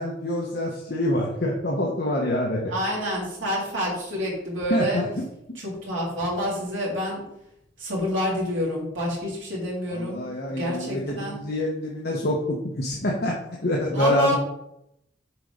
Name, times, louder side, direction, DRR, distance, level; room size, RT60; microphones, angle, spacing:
voice 1, 0.0-2.6 4.7-5.1 9.9-13.4 13.6-14.4, left 1 dB, 50° left, -2 dB, 0.9 m, -26 dB
voice 2, 2.7-5.0 5.5-7.3 7.8-11.4 13.9-14.4, equal, 80° right, -4 dB, 3.0 m, -28 dB
7.4 x 4.1 x 5.0 m, 0.81 s
head